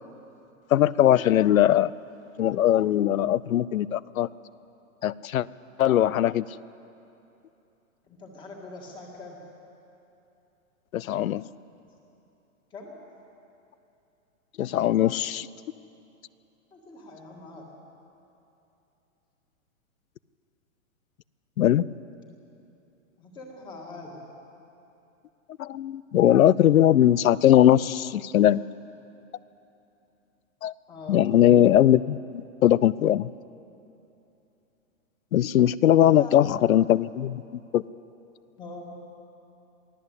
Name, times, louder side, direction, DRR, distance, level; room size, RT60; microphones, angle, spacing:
voice 1, 0.7-1.9 2.4-4.3 5.0-5.5 5.8-6.5 10.9-11.5 14.6-15.5 21.6-21.9 25.6-28.6 30.6-30.7 31.1-33.3 35.3-37.4 37.7-37.8, left 11 dB, 75° left, 20 dB, 0.7 m, -20 dB
voice 2, 8.1-9.4 12.7-13.0 16.7-17.7 23.2-24.2 30.9-31.2 36.1-36.6 38.6-39.0, left 2 dB, 10° left, 0 dB, 1.9 m, -42 dB
23.0 x 15.5 x 8.2 m, 2.9 s
hypercardioid pair, 175°, 41 cm